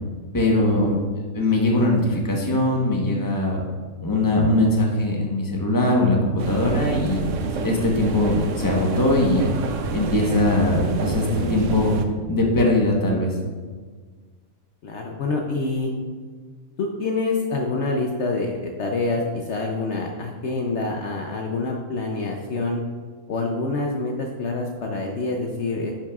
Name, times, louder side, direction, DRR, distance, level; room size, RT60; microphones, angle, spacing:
voice 1, 0.3-1.0 1.3-3.6 4.0-7.2 7.6-9.5 9.9-11.9 12.3-13.3, left 1 dB, 15° left, -1 dB, 0.9 m, -21 dB
sound 1, 6.4-12.0, right 4 dB, 70° right, 0.9 m, -28 dB
voice 2, 14.8-15.9 16.8-22.8 23.3-25.9, left 3 dB, 60° left, 1 dB, 0.9 m, -26 dB
10.0 x 5.9 x 2.4 m, 1.5 s
omnidirectional pair, 1.4 m